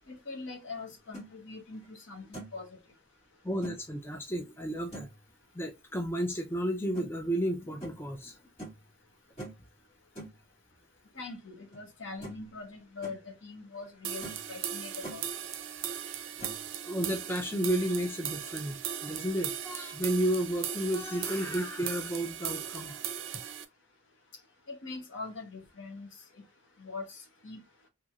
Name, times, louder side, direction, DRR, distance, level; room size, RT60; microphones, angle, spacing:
voice 1, 0.1-2.7 11.1-15.2 24.7-26.1 26.8-27.6, left 3 dB, 75° left, 0.9 m, -42 dB
sound 1, 0.9-1.3 1.8-1.9 2.3-2.6 3.6-3.8 4.9-5.2 6.9-7.1 7.8-8.0 8.6-8.8 9.4-9.6 10.1-10.3 11.7-11.8 12.2-12.5 12.8-13.2 13.7-13.8 14.2-14.5 14.8-15.2 16.4-16.6, right 1 dB, 30° left, 1.8 m, -43 dB
voice 2, 3.4-5.1 5.5-8.4 16.9-23.0, equal, 10° left, 0.4 m, -32 dB
sound 2, 14.0-23.6, right 9 dB, 85° right, 0.4 m, -38 dB
2.9 x 2.8 x 2.3 m
head